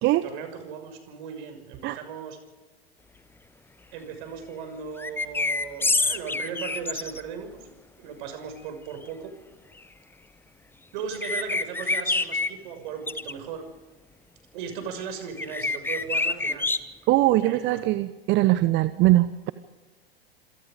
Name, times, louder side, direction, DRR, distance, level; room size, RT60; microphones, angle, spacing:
voice 1, 0.2-2.4 3.9-7.6 8.0-9.4 10.9-13.7 14.5-16.7 17.4-17.8, right 6 dB, 55° right, 7 dB, 6.3 m, -37 dB
sound 1, 5.0-7.2 11.1-12.5 13.1-13.3 15.4-16.8, left 3 dB, 5° left, 1.1 m, -26 dB
voice 2, 17.1-19.5, right 16 dB, 35° right, 14 dB, 1.0 m, -21 dB
27.5 x 27.0 x 5.2 m, 1.2 s
figure-of-eight pair, 90°, 30 cm